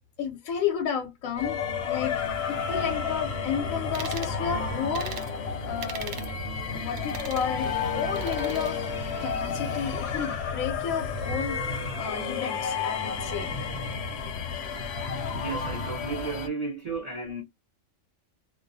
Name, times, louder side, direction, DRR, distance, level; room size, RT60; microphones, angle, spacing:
voice 1, 0.2-2.2 2.5-6.2 6.7-8.8 9.2-13.5 14.2-14.4, left 7 dB, 85° left, 1.0 m, -32 dB
sound 1, 1.4-16.5, left 5 dB, 65° left, 0.7 m, -31 dB
sound 2, 2.1-15.0, right 4 dB, 85° right, 1.1 m, -48 dB
sound 3, 3.9-4.3 4.9-5.3 5.8-6.3 7.0-7.5 8.2-8.7, right 6 dB, 65° right, 0.8 m, -39 dB
voice 2, 15.3-17.4, right 4 dB, 45° right, 0.5 m, -33 dB
2.3 x 2.3 x 2.5 m
omnidirectional pair, 1.4 m